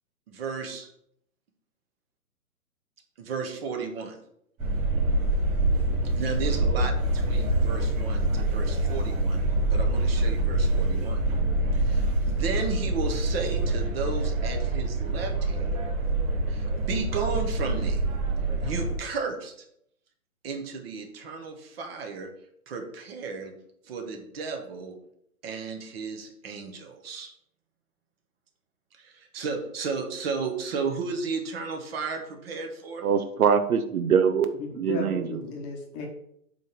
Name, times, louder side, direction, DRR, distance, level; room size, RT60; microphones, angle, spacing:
voice 1, 0.3-0.9 3.2-4.2 6.1-9.4 9.7-11.2 11.7-15.7 16.5-18.0 18.6-19.6 20.4-22.3 22.7-23.5 23.8-25.0 25.4-27.3 28.9-33.0, right 5 dB, 40° right, 4 dB, 1.6 m, -34 dB
sound 1, 4.6-18.9, right 2 dB, 15° right, 2.6 m, -25 dB
voice 2, 33.0-35.3, right 7 dB, 70° right, 9 dB, 0.9 m, -23 dB
voice 3, 34.5-36.1, left 2 dB, 20° left, 1 dB, 1.1 m, -34 dB
8.1 x 3.5 x 6.1 m, 0.72 s
hypercardioid pair, 145°, 45 cm